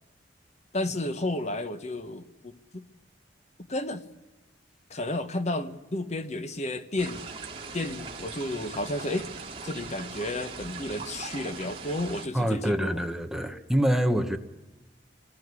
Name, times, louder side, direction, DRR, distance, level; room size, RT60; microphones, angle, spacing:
voice 1, 0.7-2.8 3.7-4.0 4.9-7.2 7.7-9.3 9.6-13.0, left 1 dB, 40° left, 1.2 m, -32 dB
sound 1, 7.0-12.3, right 4 dB, 35° right, 2.7 m, -40 dB
voice 2, 12.3-14.4, equal, 5° right, 1.2 m, -25 dB
27.5 x 19.5 x 8.3 m
head